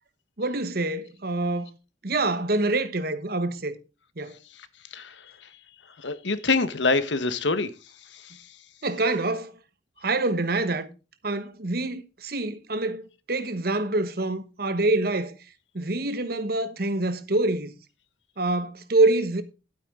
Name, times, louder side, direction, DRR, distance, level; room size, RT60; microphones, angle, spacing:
voice 1, 0.4-1.7 2.0-3.8 4.2-4.4 8.8-9.5 10.0-10.9 11.2-15.4 15.7-17.7 18.4-19.4, right 2 dB, 55° right, 1.2 m, -26 dB
voice 2, 4.5-5.5 6.0-8.6, left 3 dB, 90° left, 1.2 m, -27 dB
12.5 x 8.5 x 3.7 m
head